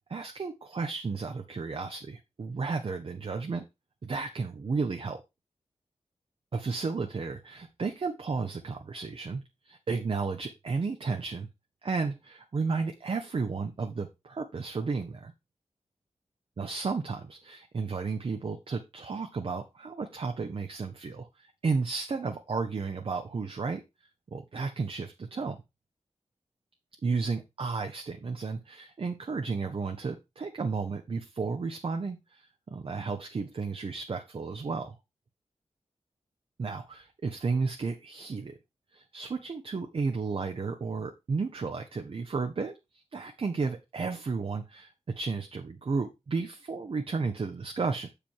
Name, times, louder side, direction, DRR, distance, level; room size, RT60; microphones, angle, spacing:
voice 1, 0.1-3.6 4.0-5.2 6.5-11.5 11.8-15.3 16.6-23.8 24.3-25.6 27.0-35.0 36.6-38.6 38.9-42.7 43.1-48.1, right 4 dB, 55° right, 6 dB, 0.8 m, -33 dB
7.2 x 5.0 x 4.5 m, 0.24 s
wide cardioid pair, 120°, 11 cm